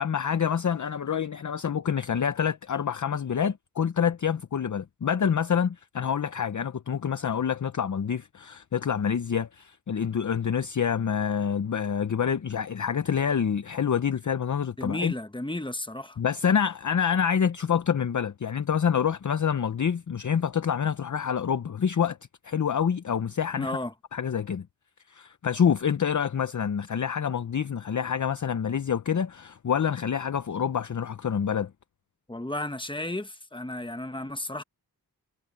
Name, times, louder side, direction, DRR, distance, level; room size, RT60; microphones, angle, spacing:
voice 1, 0.0-15.1 16.2-22.2 22.4-23.7 24.1-24.7 25.1-31.7, left 7 dB, 45° left, 0.7 m, -27 dB
voice 2, 14.8-16.2 23.5-23.9 32.3-34.6, left 1 dB, 10° left, 1.3 m, -33 dB
wide cardioid pair, 100°, 41 cm